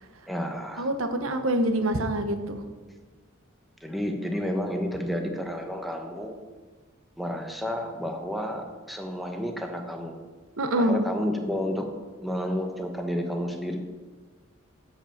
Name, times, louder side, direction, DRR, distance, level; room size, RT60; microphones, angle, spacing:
voice 1, 0.3-0.9 3.8-6.3 7.2-10.2 10.8-11.9 12.2-13.8, equal, ahead, 3 dB, 1.0 m, -31 dB
voice 2, 0.8-2.6 10.6-11.0, right 1 dB, 80° right, 7 dB, 1.0 m, -25 dB
11.0 x 5.5 x 7.1 m, 1.4 s
head